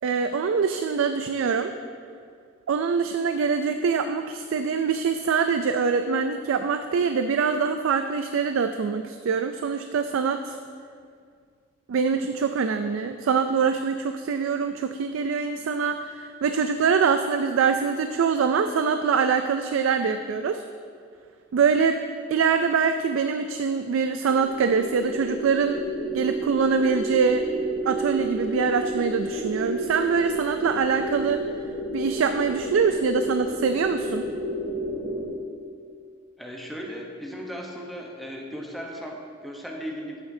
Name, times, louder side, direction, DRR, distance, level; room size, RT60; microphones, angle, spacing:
voice 1, 0.0-1.7 2.7-10.6 11.9-20.6 21.5-22.0 22.3-25.8 26.1-27.5 27.8-31.4 31.9-34.3, right 5 dB, 85° right, 7 dB, 0.3 m, -24 dB
sound 1, 24.3-35.3, right 1 dB, 15° right, 2.3 m, -31 dB
voice 2, 36.4-40.2, equal, ahead, -1 dB, 0.8 m, -36 dB
11.0 x 8.8 x 2.7 m, 2.1 s
head